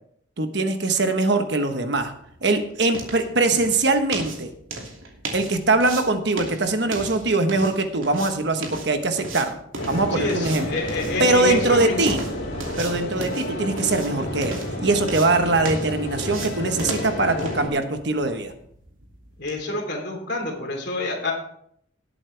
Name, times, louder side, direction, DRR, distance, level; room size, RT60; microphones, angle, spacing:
voice 1, 0.4-2.1 2.4-4.5 5.3-9.6 9.9-10.7 11.2-12.2 12.8-18.5, right 2 dB, 55° right, 6 dB, 1.3 m, -22 dB
sound 1, 1.8-19.6, right 2 dB, 85° right, 2.6 m, -37 dB
sound 2, 9.8-17.7, left 1 dB, 80° left, 3.6 m, -30 dB
voice 2, 10.1-12.2 19.4-21.3, left 2 dB, 55° left, 1 dB, 3.5 m, -28 dB
18.0 x 8.5 x 3.4 m, 0.67 s
head